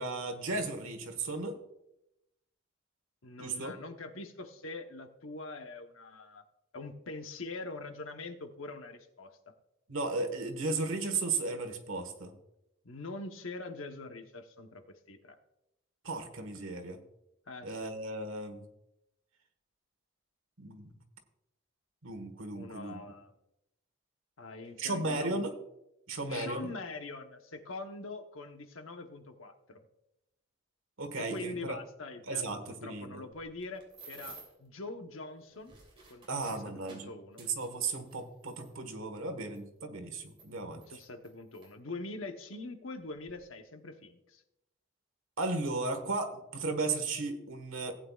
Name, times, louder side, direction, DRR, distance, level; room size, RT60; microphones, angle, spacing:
voice 1, 0.0-1.6 3.4-3.7 9.9-12.3 16.0-17.0 17.6-18.7 20.6-20.9 22.0-23.0 24.8-25.5 26.1-26.7 31.0-31.8 32.3-33.2 36.3-37.1 37.4-40.8 45.4-47.9, right 3 dB, 90° right, 6 dB, 1.5 m, -35 dB
voice 2, 3.2-6.4 6.7-9.5 12.8-15.4 17.5-17.9 22.5-23.3 24.4-25.5 26.3-29.9 31.2-35.8 36.1-37.4 40.7-44.4, left 3 dB, 85° left, 6 dB, 1.0 m, -44 dB
sound 1, 33.3-34.7 35.4-38.7 39.6-39.7 40.2-41.7 42.5-42.6 43.0-43.3, right 4 dB, 25° right, 2.8 m, -54 dB
18.0 x 8.8 x 2.4 m, 0.87 s
head